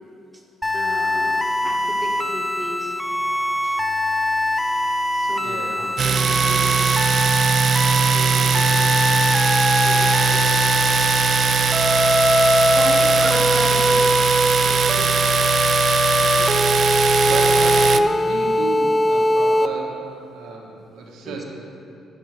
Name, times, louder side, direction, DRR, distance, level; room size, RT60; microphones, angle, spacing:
sound 1, 0.6-19.7, left 1 dB, 10° left, 0.5 m, -21 dB
voice 1, 0.7-3.0 5.1-6.7 8.1-8.9 9.5-10.6 12.7-15.2 16.2-16.7 21.2-21.4, equal, 10° right, -1 dB, 1.5 m, -35 dB
voice 2, 5.4-5.8 12.7-12.9 17.2-20.0 20.3-21.4, right 4 dB, 90° right, -1 dB, 1.4 m, -33 dB
Domestic sounds home sounds, 6.0-18.0, right 7 dB, 55° right, 0.4 m, -20 dB
9.3 x 7.2 x 6.0 m, 2.6 s
cardioid pair, 90°, 0 cm